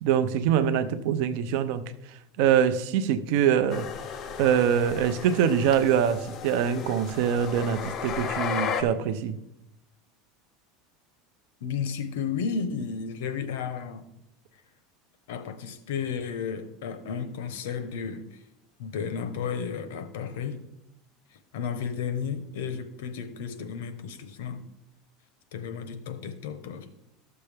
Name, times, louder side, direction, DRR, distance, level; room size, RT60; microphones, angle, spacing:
voice 1, 0.0-1.9 2.4-3.9 4.4-9.4, right 8 dB, 60° right, 0.6 m, -24 dB
sound 1, 3.7-8.8, left 6 dB, 30° left, 0.6 m, -34 dB
voice 2, 11.6-14.1 15.3-18.4 18.8-20.6 21.5-24.6 25.5-26.9, left 6 dB, 85° left, 0.9 m, -33 dB
12.5 x 6.9 x 3.4 m
supercardioid pair, 160°, 0 cm